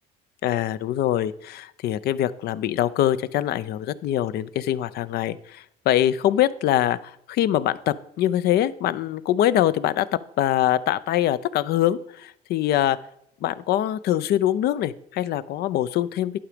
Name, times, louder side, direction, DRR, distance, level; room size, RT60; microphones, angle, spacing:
voice 1, 0.4-10.1 10.4-13.0 13.4-16.3, left 12 dB, 70° left, 16 dB, 0.5 m, -23 dB
11.5 x 5.0 x 5.0 m, 0.75 s
cardioid pair, 110°, 17 cm